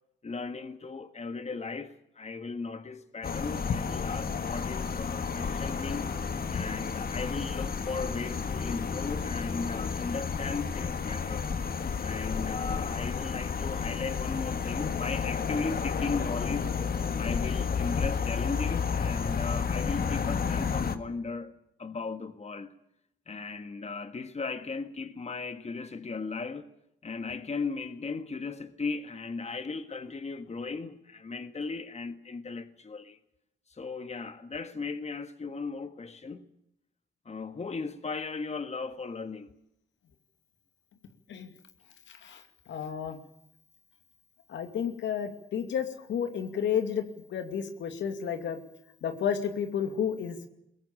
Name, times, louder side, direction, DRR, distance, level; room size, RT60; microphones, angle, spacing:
voice 1, 0.2-6.1 6.5-11.5 12.0-16.7 17.2-21.5 21.8-22.7 23.3-26.7 27.0-33.2 33.7-36.4 37.2-39.5, left 4 dB, 35° left, 1.6 m, -37 dB
sound 1, 3.2-21.0, left 6 dB, 50° left, 1.8 m, -31 dB
voice 2, 42.1-42.4 42.7-43.2 44.5-47.0 47.3-48.6 49.0-50.5, left 8 dB, 75° left, 2.6 m, -31 dB
22.0 x 18.5 x 8.8 m
supercardioid pair, 55°, 19 cm